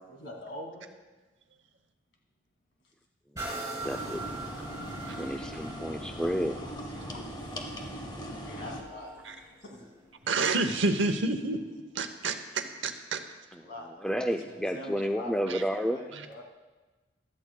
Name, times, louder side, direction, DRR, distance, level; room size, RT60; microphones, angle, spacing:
voice 1, 0.2-0.9 4.9-5.1 6.6-7.4 8.4-9.9 13.6-13.9 14.2-15.3 15.8-16.4, left 1 dB, 65° left, 0 dB, 2.2 m, -44 dB
sound 1, 3.3-11.0 11.5-11.6, right 2 dB, 15° right, 3.6 m, -43 dB
voice 2, 3.4-4.3 5.2-6.6 13.5-13.6 14.0-16.0, equal, 5° left, 4 dB, 0.3 m, -31 dB
sound 2, 3.8-8.8, equal, 25° left, 1.1 m, -40 dB
voice 3, 10.2-13.2 15.5-15.6, right 3 dB, 70° right, 8 dB, 0.8 m, -29 dB
15.0 x 12.5 x 2.2 m, 1.2 s
head